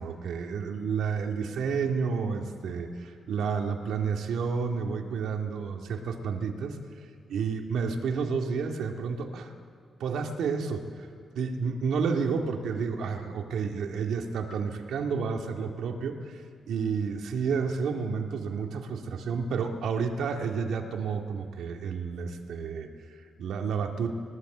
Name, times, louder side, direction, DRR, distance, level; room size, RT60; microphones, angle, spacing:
voice 1, 0.0-6.8 7.3-9.5 10.0-10.9 11.4-16.4 16.7-24.1, right 5 dB, 85° right, 3 dB, 2.0 m, -30 dB
21.5 x 17.5 x 7.9 m, 2.4 s
cardioid pair, 70°, 0 cm